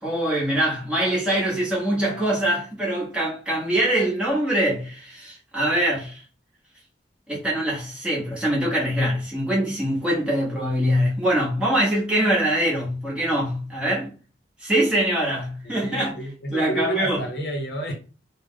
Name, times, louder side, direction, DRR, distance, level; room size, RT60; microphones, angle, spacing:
voice 1, 0.0-6.2 7.3-14.1 14.6-16.1 16.5-17.2, right 1 dB, 5° right, 1.2 m, -23 dB
voice 2, 15.6-17.9, right 1 dB, 60° left, 0.9 m, -30 dB
3.4 x 2.3 x 3.7 m
head